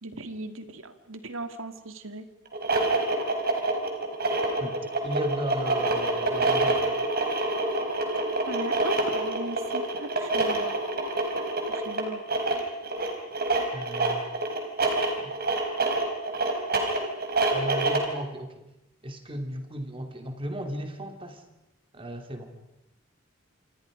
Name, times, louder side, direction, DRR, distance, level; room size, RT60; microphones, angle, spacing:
voice 1, 0.0-2.3 8.5-10.8 11.7-12.2, right 2 dB, 70° right, 8 dB, 2.1 m, -38 dB
sound 1, 2.5-18.2, right 2 dB, 50° right, 4.6 m, -27 dB
voice 2, 4.6-6.9 13.7-14.3 15.2-15.3 17.5-18.5 19.0-21.4 21.9-22.5, equal, 25° right, 5 dB, 2.9 m, -35 dB
28.0 x 26.5 x 5.2 m, 0.92 s
head